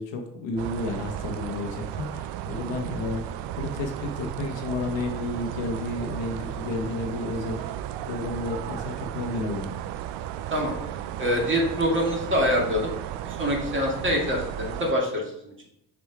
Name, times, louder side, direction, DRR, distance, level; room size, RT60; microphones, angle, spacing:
voice 1, 0.0-7.8 8.1-9.7, left 2 dB, 70° left, 3 dB, 1.1 m, -32 dB
sound 1, 0.6-14.9, right 11 dB, 65° right, 0.5 m, -34 dB
voice 2, 11.2-12.9 13.2-15.7, equal, 25° right, -1 dB, 2.2 m, -25 dB
4.8 x 4.1 x 4.7 m, 0.77 s
hypercardioid pair, 50°, 46 cm